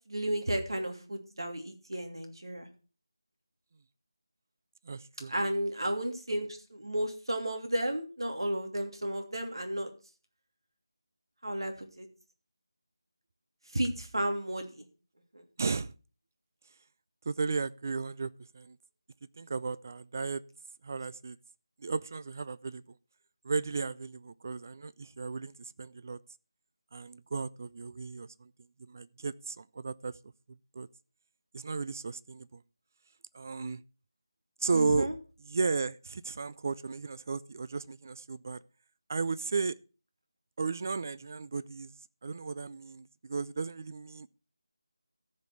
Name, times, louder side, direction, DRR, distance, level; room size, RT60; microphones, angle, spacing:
voice 1, 0.1-2.7 5.3-9.9 11.4-12.1 13.7-14.9 15.3-15.4 34.7-35.1, right 1 dB, 75° right, 2.9 m, -33 dB
voice 2, 4.8-5.3 15.6-15.9 17.3-18.8 19.4-20.4 20.8-21.4 21.8-22.8 23.4-26.2 26.9-28.5 28.9-30.2 30.7-30.9 31.5-32.6 33.3-33.8 34.6-35.1 35.4-38.6 39.1-39.8 40.6-41.9 42.2-44.3, right 4 dB, 40° right, 0.4 m, -34 dB
14.0 x 5.3 x 6.1 m
figure-of-eight pair, 165°, 2 cm